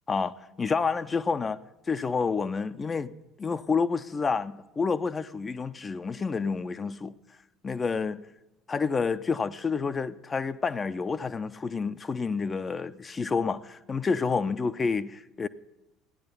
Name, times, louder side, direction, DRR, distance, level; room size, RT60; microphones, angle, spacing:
voice 1, 0.1-1.6 1.9-3.1 3.4-7.1 7.6-8.2 8.7-15.5, left 5 dB, 30° left, 0.6 m, -29 dB
15.0 x 10.5 x 6.9 m
figure-of-eight pair, 60°, 0 cm